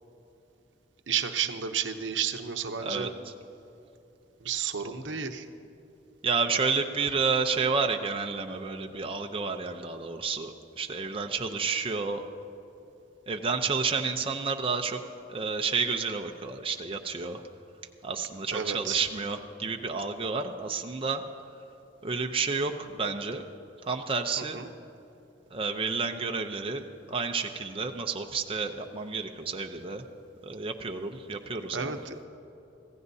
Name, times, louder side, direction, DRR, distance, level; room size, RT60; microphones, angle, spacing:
voice 1, 1.1-3.1 4.4-5.5 18.5-19.0 24.4-24.7 31.7-32.2, right 7 dB, 75° right, 6 dB, 0.8 m, -32 dB
voice 2, 2.8-3.3 6.2-12.2 13.3-15.0 15.3-17.4 18.0-21.2 22.0-23.4 23.8-24.6 25.5-30.0 30.4-32.0, right 4 dB, 30° right, 3 dB, 0.6 m, -30 dB
25.0 x 15.5 x 2.7 m, 2.9 s
head